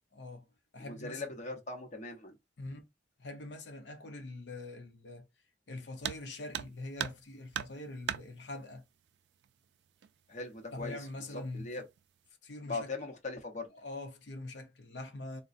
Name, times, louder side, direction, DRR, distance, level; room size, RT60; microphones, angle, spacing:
voice 1, 0.1-0.5 0.7-1.2 2.6-2.9 3.2-5.3 5.7-8.8 10.7-11.7 12.4-12.9 13.7-15.4, left 2 dB, 85° left, 0.7 m, -43 dB
voice 2, 0.8-2.4 10.3-11.8 12.7-13.7, left 3 dB, 45° left, 0.8 m, -40 dB
sound 1, 6.0-6.3 6.5-7.3 7.5-8.3 9.4-9.5 10.0-10.1 10.9-11.2 11.6-12.0, right 9 dB, 75° right, 0.3 m, -37 dB
3.9 x 2.2 x 2.4 m
head